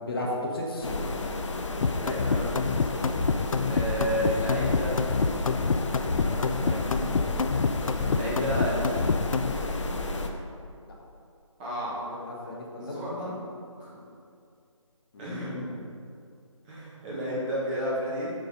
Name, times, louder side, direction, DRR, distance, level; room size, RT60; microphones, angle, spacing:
voice 1, 0.0-1.1 4.1-4.2 11.9-13.0 15.1-15.9, left 1 dB, 45° left, -3 dB, 1.2 m, -35 dB
sound 1, 0.8-10.3, left 2 dB, 65° left, 0.7 m, -31 dB
sound 2, 1.8-9.5, left 5 dB, 85° left, 0.4 m, -27 dB
voice 2, 2.0-2.4 3.7-5.0 6.0-7.1 8.1-9.1 11.6-12.1 12.8-13.4 13.8-14.0 15.2-15.5 16.7-18.3, equal, 15° right, -8 dB, 1.3 m, -32 dB
6.6 x 4.0 x 5.4 m, 2.4 s
figure-of-eight pair, 160°, 17 cm